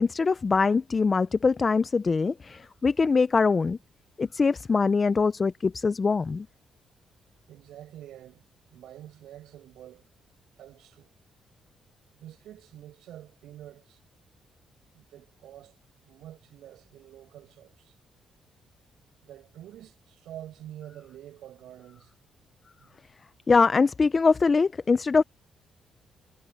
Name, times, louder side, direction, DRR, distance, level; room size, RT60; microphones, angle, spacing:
voice 1, 0.0-3.8 4.2-6.5 23.5-25.2, left 4 dB, 25° left, 0.3 m, -23 dB
voice 2, 7.5-8.4 8.7-10.0 10.6-11.1 12.2-14.0 14.9-15.8 16.1-18.0 19.2-22.1 22.8-22.9, right 12 dB, 85° right, 4.8 m, -47 dB
cardioid pair, 170°, 0 cm